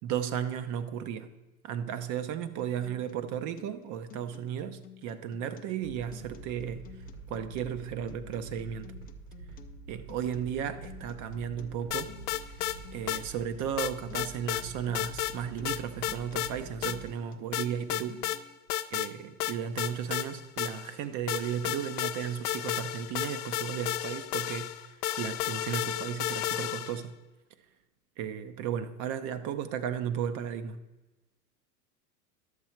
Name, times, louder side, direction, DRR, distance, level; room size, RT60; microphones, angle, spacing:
voice 1, 0.0-1.3 1.6-6.9 7.3-8.9 9.9-12.1 12.9-18.2 18.9-27.1 28.2-30.8, right 8 dB, 40° right, 0.8 m, -35 dB
Acoustic guitar, 2.6-18.6, left 10 dB, 20° left, 0.5 m, -53 dB
sound 1, 5.8-17.1, right 4 dB, 75° right, 3.4 m, -47 dB
sound 2, 11.9-12.8 13.1-13.2 13.8-14.6 14.9-15.4 15.7-16.5 16.8-17.0 17.5-18.4 18.7-19.1 19.4-21.0 21.3-27.0, left 14 dB, 75° left, 0.7 m, -33 dB
11.0 x 7.1 x 4.5 m
hypercardioid pair, 105°, 45 cm